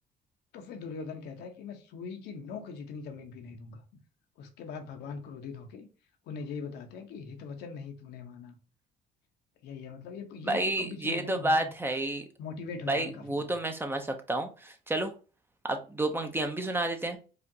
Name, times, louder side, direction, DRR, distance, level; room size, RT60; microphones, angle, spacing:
voice 1, 0.5-3.8 4.4-5.9 6.3-8.6 9.6-11.7 12.4-13.6, left 5 dB, 80° left, 0.9 m, -41 dB
voice 2, 10.5-12.2 12.9-15.1 15.6-17.2, right 1 dB, 15° right, 0.7 m, -30 dB
4.9 x 2.5 x 2.8 m
cardioid pair, 110°, 17 cm